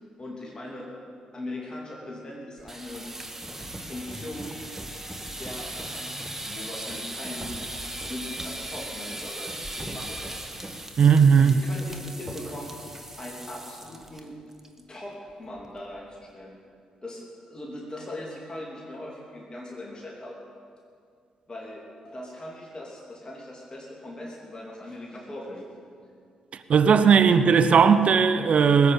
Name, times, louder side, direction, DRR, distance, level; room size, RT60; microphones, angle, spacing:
voice 1, 0.2-0.9 1.3-3.1 3.8-4.6 5.4-7.5 8.0-10.4 11.3-12.7 13.2-14.4 14.8-16.6 17.0-20.4 21.5-25.6 27.3-27.4, left 1 dB, 35° left, -2 dB, 3.1 m, -40 dB
sound 1, 2.6-14.2 14.5-14.8 15.1-15.2 15.6-16.0, right 1 dB, 15° right, 1.9 m, -38 dB
voice 2, 11.0-11.6 26.7-28.9, right 6 dB, 55° right, 10 dB, 0.8 m, -17 dB
19.0 x 8.5 x 8.8 m, 2.3 s
hypercardioid pair, 40°, 3 cm